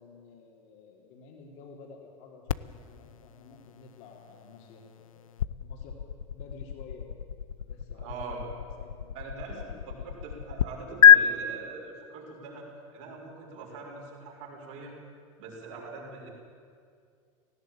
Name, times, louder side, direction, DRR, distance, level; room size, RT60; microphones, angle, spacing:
voice 1, 0.0-6.0 6.3-7.1 7.6-10.2, left 4 dB, 60° left, 0 dB, 4.0 m, -52 dB
sound 1, 2.5-10.7 11.0-11.2, left 9 dB, 85° left, 0.5 m, -26 dB
voice 2, 8.0-8.4 9.1-14.9 15.4-16.3, right 4 dB, 65° right, -2 dB, 6.1 m, -42 dB
18.0 x 16.5 x 9.0 m, 2.2 s
hypercardioid pair, 85°, 17 cm